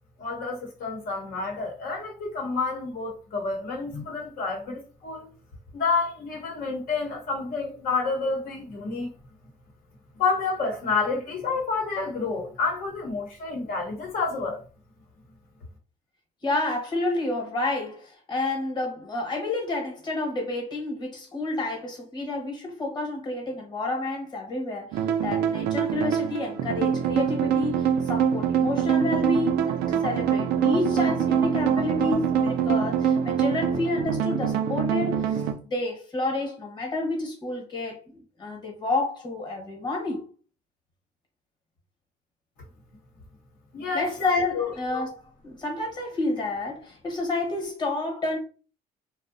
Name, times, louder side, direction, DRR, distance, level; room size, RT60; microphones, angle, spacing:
voice 1, 0.2-5.3 5.7-9.1 10.2-14.6 43.7-44.1 44.5-44.7, left 4 dB, 60° left, 0.7 m, -29 dB
voice 2, 16.4-40.2 43.9-48.4, left 2 dB, 25° left, 1.0 m, -29 dB
sound 1, 24.9-35.5, right 8 dB, 75° right, 0.4 m, -24 dB
2.6 x 2.0 x 2.5 m
cardioid pair, 110°, 17 cm